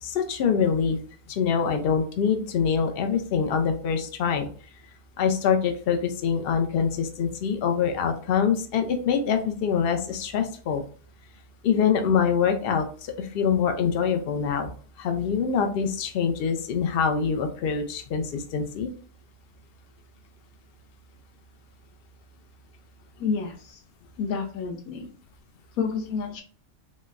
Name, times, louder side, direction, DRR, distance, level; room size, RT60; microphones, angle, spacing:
voice 1, 0.0-1.0 1.3-4.5 5.2-10.8 11.6-18.9, left 6 dB, 65° left, 5 dB, 0.6 m, -25 dB
voice 2, 23.2-23.8 24.2-25.1 25.8-26.4, left 5 dB, 85° left, 2 dB, 1.2 m, -29 dB
3.8 x 2.1 x 2.4 m, 0.42 s
omnidirectional pair, 1.4 m